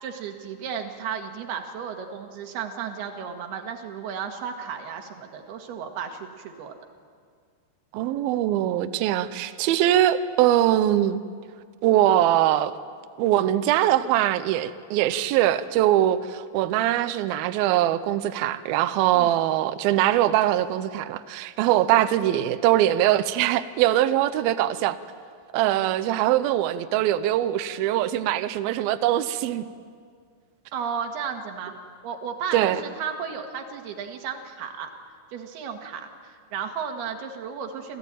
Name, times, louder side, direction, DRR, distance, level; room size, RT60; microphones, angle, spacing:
voice 1, 0.0-6.8 19.1-19.3 30.7-31.7 32.0-34.9 35.3-38.0, right 7 dB, 65° right, 4 dB, 3.5 m, -34 dB
voice 2, 7.9-11.2 11.8-12.7 13.2-25.0 25.5-29.7 32.5-32.8, right 13 dB, 85° right, 11 dB, 2.1 m, -22 dB
27.0 x 16.5 x 9.1 m, 2.1 s
omnidirectional pair, 5.2 m